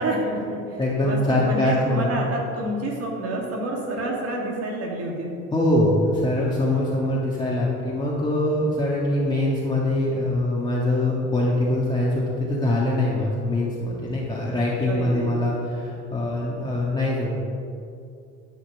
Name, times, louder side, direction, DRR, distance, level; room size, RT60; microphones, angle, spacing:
voice 1, 0.0-5.3 14.9-15.4, right 1 dB, 50° right, -1 dB, 2.8 m, -28 dB
voice 2, 0.8-2.1 5.5-17.3, left 1 dB, 15° left, -6 dB, 1.8 m, -23 dB
12.0 x 5.8 x 7.0 m, 2.6 s
cardioid pair, 120°, 31 cm